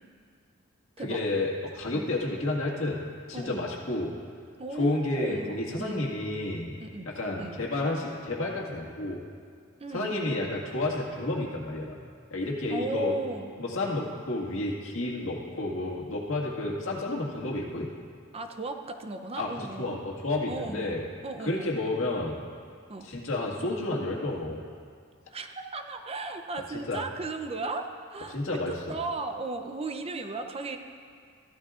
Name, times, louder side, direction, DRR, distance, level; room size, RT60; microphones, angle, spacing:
voice 1, 1.0-3.0 3.3-4.1 4.8-6.8 7.1-9.2 9.9-12.0 12.3-13.1 13.6-17.9 19.4-19.5 19.8-21.1 21.4-22.4 23.0-24.6 26.9-27.0 28.3-28.7, left 2 dB, 90° left, -3 dB, 1.8 m, -30 dB
voice 2, 3.3-3.6 4.6-6.1 6.8-7.1 7.4-7.6 9.8-10.2 12.7-13.5 18.3-20.0 20.5-21.0 21.2-21.7 22.9-23.1 25.3-30.8, right 2 dB, 30° right, 6 dB, 0.6 m, -36 dB
15.5 x 12.0 x 2.5 m, 2.1 s
head